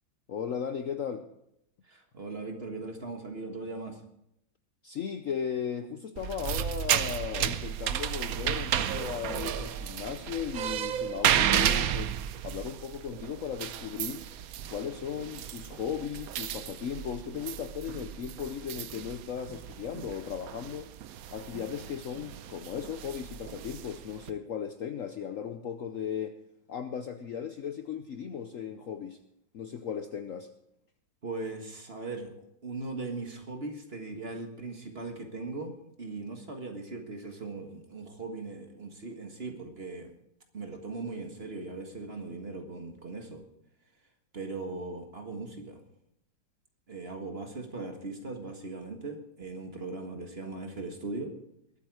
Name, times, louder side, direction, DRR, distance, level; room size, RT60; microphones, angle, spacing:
voice 1, 0.3-1.3 4.8-12.1 12.4-14.3 14.7-20.9 21.3-26.4 26.7-29.2 29.5-30.5, left 8 dB, 60° left, 8 dB, 0.9 m, -36 dB
voice 2, 1.8-4.0 31.2-40.1 40.5-43.4 44.3-45.8 46.9-51.4, right 3 dB, 35° right, 4 dB, 1.7 m, -39 dB
sound 1, 6.2-24.3, right 10 dB, 65° right, 0.9 m, -33 dB
21.0 x 8.8 x 4.8 m, 0.80 s
omnidirectional pair, 2.0 m